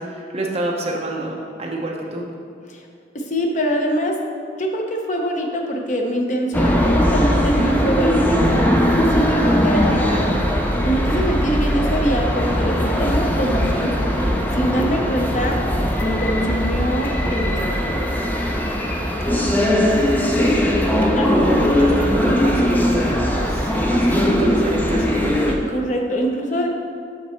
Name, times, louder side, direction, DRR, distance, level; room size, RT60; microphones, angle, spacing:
voice 1, 0.0-2.2 9.9-10.4 19.2-20.1 20.9-25.6, right 1 dB, 35° right, -2 dB, 1.0 m, -28 dB
voice 2, 3.1-4.2 4.6-9.9 10.8-14.3 14.6-15.6 16.0-17.8 19.3-20.0 21.2-21.3 25.7-26.7, right 1 dB, 40° left, 1 dB, 0.8 m, -24 dB
sound 1, 6.5-25.6, equal, 10° left, 0.5 m, -19 dB
6.0 x 5.9 x 4.4 m, 2.3 s
head